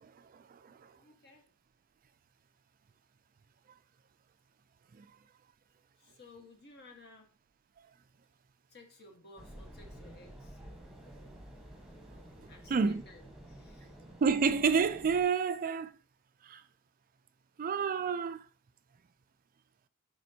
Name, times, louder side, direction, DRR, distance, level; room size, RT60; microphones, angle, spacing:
voice 1, 0.0-0.9 4.9-5.1 12.7-13.0 14.2-15.9 16.4-16.6 17.6-18.4, right 5 dB, 40° right, 0.4 m, -30 dB
voice 2, 0.9-1.5 6.0-7.3 8.7-10.6 12.5-14.0, left 2 dB, 50° left, 1.5 m, -56 dB
sound 1, 9.4-15.2, right 1 dB, 5° right, 1.2 m, -51 dB
9.4 x 3.6 x 2.8 m
head